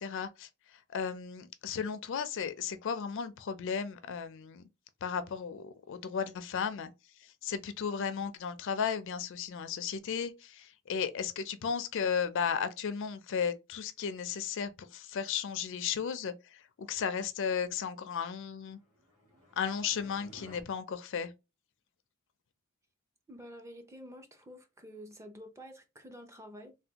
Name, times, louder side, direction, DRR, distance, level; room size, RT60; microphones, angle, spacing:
voice 1, 0.0-4.6 5.0-6.9 7.2-18.8 19.6-21.3, left 7 dB, 60° left, 0.4 m, -35 dB
sound 1, 18.7-20.6, equal, 85° right, 1.5 m, -55 dB
voice 2, 23.3-26.8, equal, 15° right, 0.5 m, -49 dB
3.3 x 2.2 x 2.8 m
head